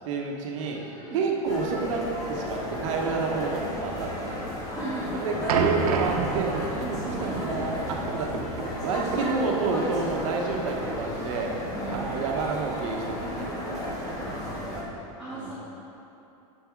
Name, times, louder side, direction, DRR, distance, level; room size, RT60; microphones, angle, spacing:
voice 1, 0.0-0.8 1.1-4.4 5.1-8.3 8.8-11.5 11.9-14.8 15.3-15.5, right 4 dB, 60° right, 0 dB, 1.1 m, -30 dB
voice 2, 0.6-1.2 4.7-5.1 11.7-12.1 15.2-15.5, right 3 dB, 5° right, -12 dB, 1.4 m, -37 dB
sound 1, 1.4-14.8, left 1 dB, 20° left, 1.2 m, -33 dB
sound 2, 5.5-10.9, right 5 dB, 85° right, 0.8 m, -31 dB
7.6 x 5.9 x 4.6 m, 2.9 s
supercardioid pair, 155°, 18 cm